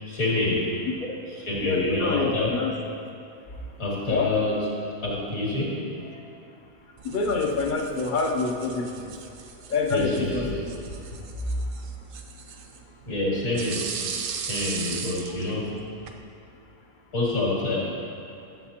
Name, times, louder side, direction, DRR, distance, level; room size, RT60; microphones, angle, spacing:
voice 1, 0.1-0.7 1.5-2.6 3.8-4.7 5.0-5.8 9.9-10.6 13.1-13.9 14.5-15.8 17.1-17.9, left 2 dB, 70° left, -5 dB, 2.3 m, -27 dB
voice 2, 1.6-2.7 4.1-4.3 7.0-9.1 9.7-10.7, left 3 dB, 50° left, 2 dB, 0.6 m, -26 dB
sound 1, 7.0-16.2, right 6 dB, 70° right, 1.0 m, -38 dB
11.0 x 7.4 x 2.9 m, 2.6 s
omnidirectional pair, 1.5 m